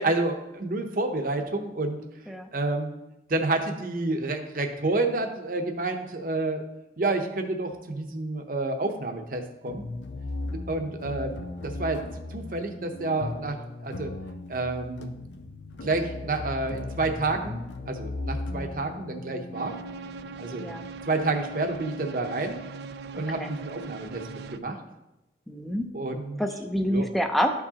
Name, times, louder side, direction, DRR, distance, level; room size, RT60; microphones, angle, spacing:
voice 1, 0.0-2.0 2.5-2.9 3.3-6.6 7.0-9.8 10.5-11.4 11.6-12.0 12.3-14.1 14.5-15.1 15.8-17.6 17.9-19.7 20.4-20.7 21.0-22.6 23.2-24.2 24.5-24.8 25.9-26.4 26.9-27.1, right 2 dB, 50° right, 5 dB, 0.8 m, -29 dB
sound 1, 9.7-22.5, left 2 dB, 85° left, 0.5 m, -38 dB
sound 2, 19.5-24.6, right 4 dB, 65° right, 0.3 m, -40 dB
voice 2, 25.5-25.9 26.4-27.5, equal, ahead, 5 dB, 0.5 m, -27 dB
11.5 x 4.7 x 2.9 m, 0.95 s
head